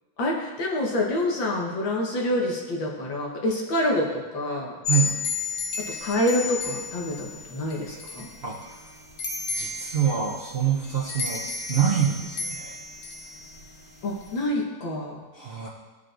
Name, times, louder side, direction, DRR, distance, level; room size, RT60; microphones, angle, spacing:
voice 1, 0.2-4.8 5.8-8.3 14.0-15.2, left 1 dB, 80° left, -1 dB, 2.0 m, -27 dB
sound 1, 4.8-14.4, left 4 dB, 55° left, 1.3 m, -33 dB
voice 2, 9.5-12.8 15.3-15.7, right 8 dB, 50° right, -5 dB, 0.7 m, -26 dB
14.0 x 5.3 x 2.5 m, 1.4 s
omnidirectional pair, 2.1 m